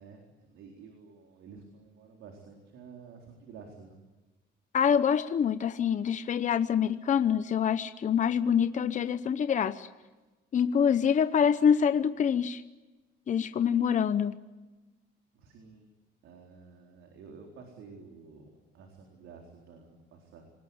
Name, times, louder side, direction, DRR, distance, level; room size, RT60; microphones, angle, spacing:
voice 1, 0.0-4.0 15.3-15.9 16.2-20.5, right 5 dB, 80° right, 2 dB, 4.2 m, -51 dB
voice 2, 4.7-9.9 10.5-12.6 13.3-14.3, left 7 dB, 40° left, 11 dB, 0.8 m, -25 dB
28.0 x 19.5 x 9.6 m, 1.2 s
cardioid pair, 125°, 20 cm